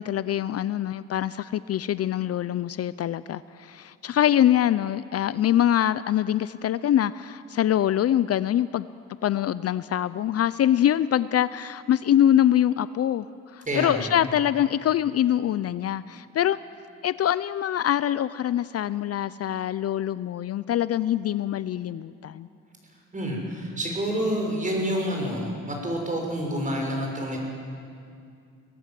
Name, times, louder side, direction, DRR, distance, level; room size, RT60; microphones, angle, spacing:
voice 1, 0.0-8.9 9.2-13.3 13.5-16.6 17.0-22.5, left 11 dB, 55° left, 16 dB, 0.5 m, -24 dB
voice 2, 13.7-14.0 23.1-27.4, equal, 25° right, 0 dB, 6.7 m, -28 dB
24.0 x 17.5 x 7.7 m, 2.4 s
cardioid pair, 90°, 30 cm